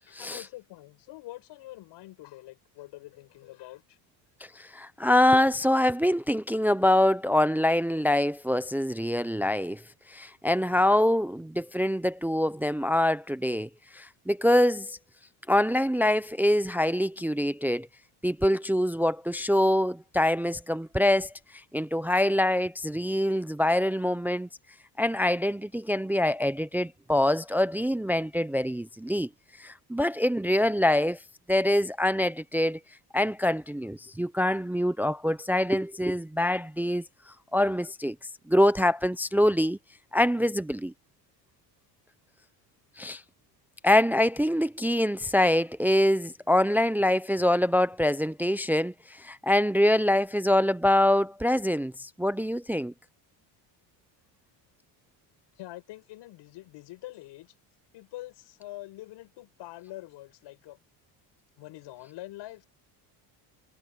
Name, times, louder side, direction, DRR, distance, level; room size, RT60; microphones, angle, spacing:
voice 1, 0.1-4.0 55.6-57.5 57.9-60.8 61.6-62.7, left 16 dB, 65° left, 7.7 m, -45 dB
voice 2, 4.6-9.8 10.1-15.0 15.5-17.9 18.2-21.3 21.7-24.5 25.0-29.3 29.6-31.2 31.5-32.8 33.1-37.0 37.5-38.2 38.5-39.8 40.1-40.9 43.0-43.2 43.8-52.9, left 1 dB, 5° right, 0.4 m, -25 dB
cardioid pair, 140°, 45 cm